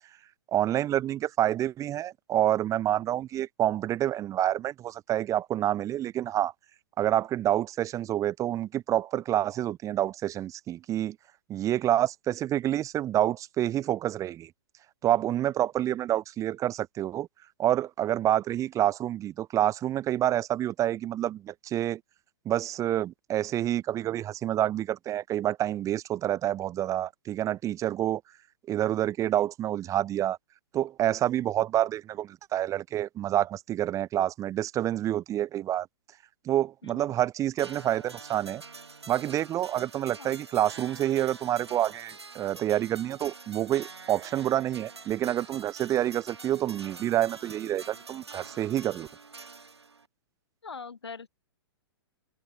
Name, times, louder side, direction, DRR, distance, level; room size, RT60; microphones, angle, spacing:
voice 1, 0.5-6.5 7.0-11.2 11.5-14.5 15.0-17.3 17.6-22.0 22.4-28.2 28.7-30.4 30.7-35.9 36.4-38.6 39.1-49.1, right 12 dB, 25° right, 1.3 m, -28 dB
voice 2, 36.8-37.1 40.2-40.4 50.6-51.3, left 5 dB, 85° left, 4.0 m, -42 dB
sound 1, 37.6-50.1, right 4 dB, 90° right, 4.0 m, -46 dB
hypercardioid pair, 120°, 13 cm